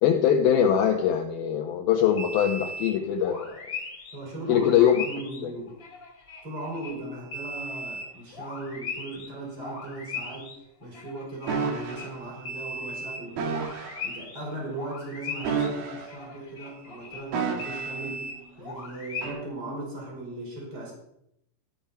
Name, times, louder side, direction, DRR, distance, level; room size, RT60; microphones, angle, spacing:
voice 1, 0.0-3.5 4.5-5.0 5.4-5.5, left 9 dB, 80° left, 3 dB, 2.2 m, -22 dB
sound 1, 2.1-4.2 4.4-9.3 9.6-19.3, left 2 dB, 30° left, 2.5 m, -39 dB
voice 2, 4.1-5.8 6.4-10.5 10.8-13.6 14.0-18.2 18.6-20.9, right 2 dB, 20° right, -2 dB, 5.5 m, -38 dB
sound 2, 11.5-12.1 13.4-14.0 15.4-16.3 17.3-18.1 19.2-19.5, right 5 dB, 60° right, 3.2 m, -30 dB
15.0 x 12.0 x 5.6 m, 0.77 s
omnidirectional pair, 5.7 m